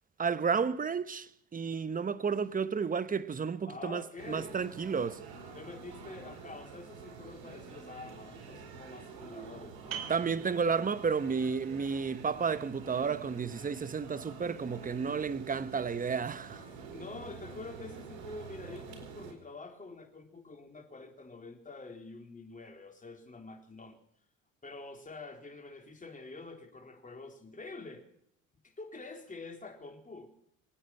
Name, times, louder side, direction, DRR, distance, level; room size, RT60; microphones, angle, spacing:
voice 1, 0.2-5.2 10.1-16.6, right 5 dB, 20° right, 1.0 m, -32 dB
voice 2, 3.7-4.7 5.5-10.0 16.7-24.0 24.6-28.0 28.6-30.3, left 3 dB, 20° left, 3.8 m, -47 dB
sound 1, 4.2-19.3, right 5 dB, 80° right, 4.3 m, -48 dB
sound 2, 9.9-15.3, right 9 dB, 55° right, 3.4 m, -49 dB
26.5 x 9.4 x 5.8 m
supercardioid pair, 90°, 37 cm